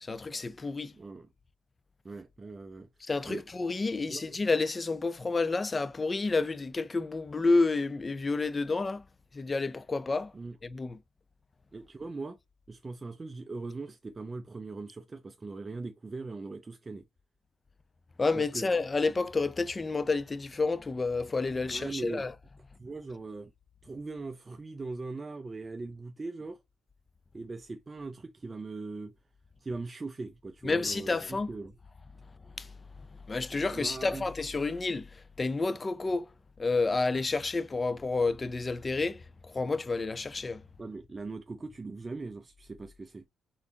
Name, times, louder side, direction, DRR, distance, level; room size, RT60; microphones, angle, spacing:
voice 1, 0.0-0.9 3.0-9.0 9.3-10.3 10.6-11.0 18.2-22.3 30.6-31.5 32.6-32.7 33.3-36.3 36.6-40.6, left 3 dB, 25° left, 0.5 m, -30 dB
voice 2, 0.9-1.3 2.0-2.9 3.3-3.4 4.1-4.2 10.3-10.6 11.7-12.4 12.7-17.0 18.3-18.7 21.7-22.2 22.8-23.5 23.8-26.6 27.3-29.1 29.6-31.7 33.7-34.2 40.8-43.3, right 3 dB, 25° right, 0.5 m, -40 dB
4.1 x 4.0 x 2.7 m
cardioid pair, 90°, 0 cm